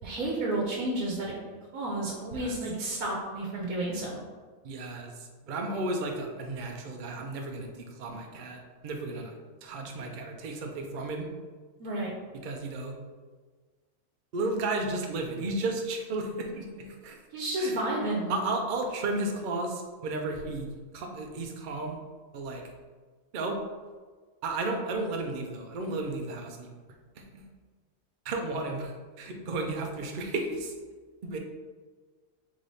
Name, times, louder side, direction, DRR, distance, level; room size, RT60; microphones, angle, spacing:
voice 1, 0.0-1.3 1.7-4.2 11.8-12.1 17.3-18.3, right 1 dB, 80° right, -2 dB, 1.1 m, -31 dB
voice 2, 4.6-9.3 9.6-11.3 12.4-13.0 14.3-17.2 17.6-17.8 18.3-22.0 22.3-22.6 23.3-23.6 24.4-26.8 27.2-27.4 28.2-30.7 31.2-31.4, right 2 dB, 55° right, 2 dB, 0.6 m, -33 dB
3.7 x 3.3 x 4.0 m, 1.5 s
omnidirectional pair, 1.4 m